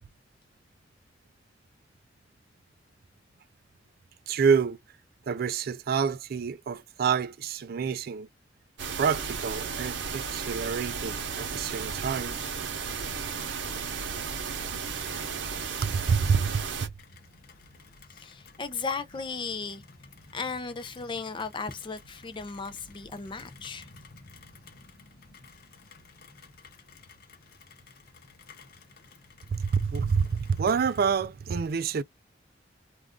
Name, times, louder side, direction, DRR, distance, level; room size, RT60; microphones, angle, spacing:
voice 1, 4.3-4.8 5.3-8.3 9.0-12.4 15.8-16.9 29.5-32.0, right 6 dB, 55° right, 0.4 m, -27 dB
sound 1, 8.8-16.9, right 6 dB, 80° right, 0.8 m, -34 dB
Rain, 17.0-31.2, left 3 dB, 55° left, 0.7 m, -53 dB
voice 2, 18.1-19.8 20.3-23.9, left 4 dB, 25° left, 0.4 m, -35 dB
2.4 x 2.3 x 3.5 m
head